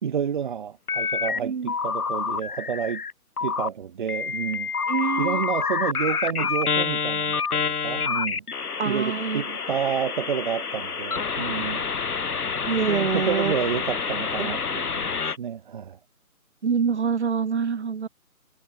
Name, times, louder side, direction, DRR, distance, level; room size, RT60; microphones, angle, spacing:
voice 1, 0.0-3.0 3.4-4.7 5.2-8.4 8.8-11.8 12.9-15.1 15.4-16.0, right 8 dB, 35° right, 2.4 m, -30 dB
sound 1, 0.9-1.4 1.7-3.1 3.4-3.7 4.1-15.4, left 5 dB, 90° left, 1.5 m, -28 dB
voice 2, 1.4-1.7 4.9-5.4 8.8-9.6 12.6-13.6 14.4-14.5 16.6-18.1, right 6 dB, 50° right, 2.7 m, -26 dB
hypercardioid pair, 165°, 44 cm